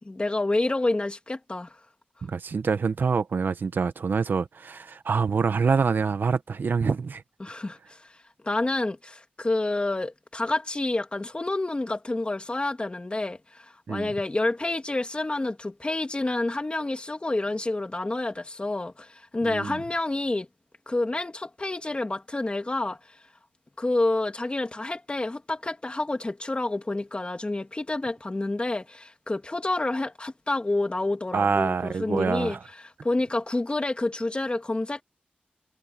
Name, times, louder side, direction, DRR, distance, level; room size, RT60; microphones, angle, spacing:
voice 1, 0.0-1.8 7.4-8.1 8.4-20.5 20.9-23.0 23.8-32.6 32.8-35.0, left 2 dB, 30° left, 2.8 m, -28 dB
voice 2, 2.2-7.2 13.9-14.1 19.4-19.8 31.3-32.6, right 5 dB, 80° right, 1.2 m, -26 dB
cardioid pair, 60°, 3 cm